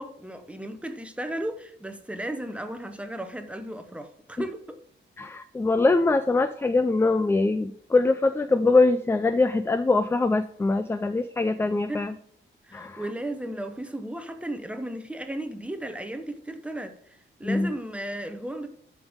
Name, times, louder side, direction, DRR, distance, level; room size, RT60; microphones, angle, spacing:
voice 1, 0.0-4.8 11.9-12.0 12.7-18.7, right 1 dB, 5° right, 0.9 m, -35 dB
voice 2, 5.2-12.1 12.7-13.0 17.4-17.7, left 3 dB, 10° left, 0.3 m, -23 dB
12.0 x 5.3 x 3.5 m
wide cardioid pair, 150°, 21 cm